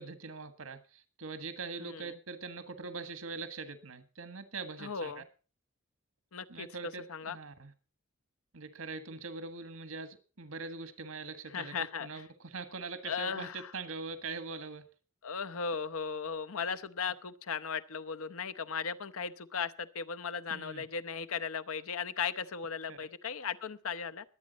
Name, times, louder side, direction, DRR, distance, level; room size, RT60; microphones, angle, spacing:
voice 1, 0.0-5.2 6.5-7.7 8.5-14.9 20.5-20.9 22.9-23.0, right 4 dB, 85° right, 1.6 m, -42 dB
voice 2, 1.8-2.1 4.8-5.2 6.3-7.4 11.5-12.3 13.0-13.7 15.2-24.2, left 6 dB, 90° left, 0.8 m, -37 dB
21.5 x 8.7 x 4.1 m
head